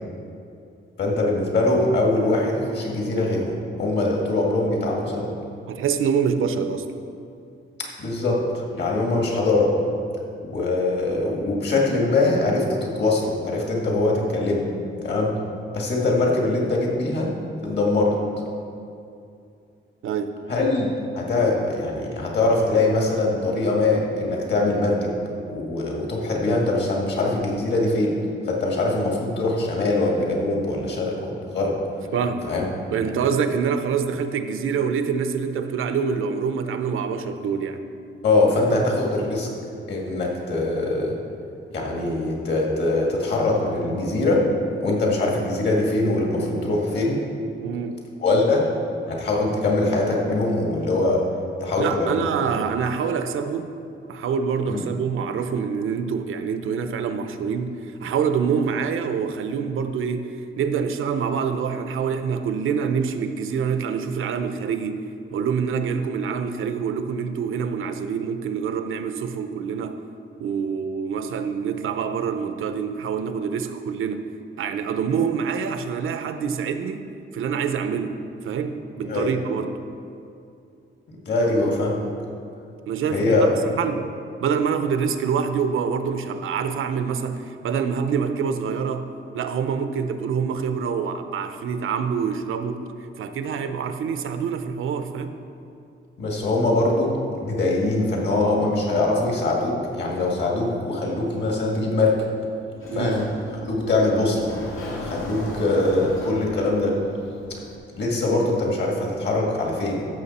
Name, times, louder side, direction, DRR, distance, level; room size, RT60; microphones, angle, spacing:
voice 1, 1.0-3.5 3.8-5.3 8.0-9.7 10.5-14.6 15.0-15.3 15.7-17.3 17.6-18.1 20.5-20.9 21.2-25.1 25.5-28.1 28.5-31.7 32.5-32.7 38.2-39.5 39.9-41.1 41.7-44.4 44.8-47.2 48.2-48.6 49.1-51.2 51.6-52.3 54.7-54.8 79.0-79.3 81.3-81.9 83.1-83.6 96.2-102.2 102.9-103.3 103.6-104.5 105.0-106.9 108.0-110.1, left 2 dB, 55° left, -1 dB, 2.0 m, -22 dB
voice 2, 5.7-6.9 20.0-20.4 32.1-32.5 32.9-37.8 38.7-38.8 47.6-48.0 51.8-53.7 54.1-65.1 65.3-70.0 70.4-74.3 74.6-77.1 77.3-79.8 82.9-84.1 84.4-89.1 89.3-92.9 93.2-95.4 102.9-103.2, right 6 dB, 80° right, 9 dB, 0.7 m, -26 dB
Sliding door, 102.8-107.8, left 1 dB, 80° left, 2.0 m, -36 dB
14.5 x 6.6 x 4.2 m, 2.5 s
wide cardioid pair, 175°, 21 cm